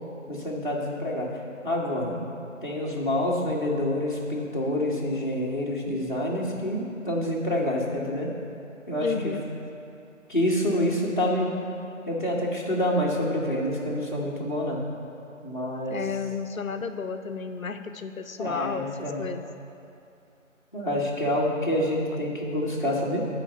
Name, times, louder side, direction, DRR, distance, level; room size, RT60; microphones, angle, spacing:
voice 1, 0.3-1.4 1.6-2.2 2.6-8.3 8.9-9.4 10.3-11.5 12.1-14.8 15.4-16.0 18.4-19.2 20.7-23.3, left 1 dB, 40° left, -4 dB, 1.2 m, -27 dB
voice 2, 9.0-9.4 15.9-19.5, left 5 dB, 90° left, 8 dB, 0.7 m, -32 dB
11.0 x 4.1 x 5.5 m, 2.6 s
figure-of-eight pair, 175°, 39 cm